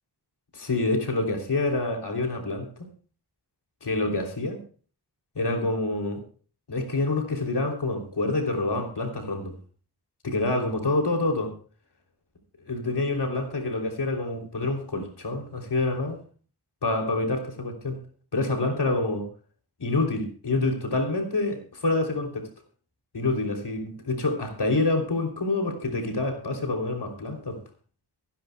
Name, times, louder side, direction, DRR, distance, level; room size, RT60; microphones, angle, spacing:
voice 1, 0.5-2.7 3.8-4.6 5.3-6.2 6.7-9.5 10.2-11.5 12.7-16.2 16.8-18.0 18.3-19.3 19.8-22.5 23.1-27.6, left 2 dB, 75° left, 2 dB, 3.3 m, -27 dB
23.5 x 10.5 x 2.3 m, 0.38 s
wide cardioid pair, 65°, 40 cm